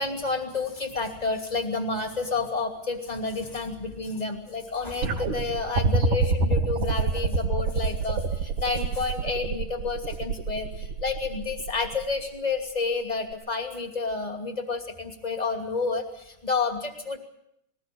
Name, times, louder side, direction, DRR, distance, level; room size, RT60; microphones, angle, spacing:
voice 1, 0.0-17.2, left 4 dB, 15° left, 4 dB, 1.8 m, -30 dB
sound 1, 5.0-12.2 13.3-13.4, right 4 dB, 55° right, 3.1 m, -26 dB
21.5 x 18.0 x 8.6 m, 0.76 s
omnidirectional pair, 4.5 m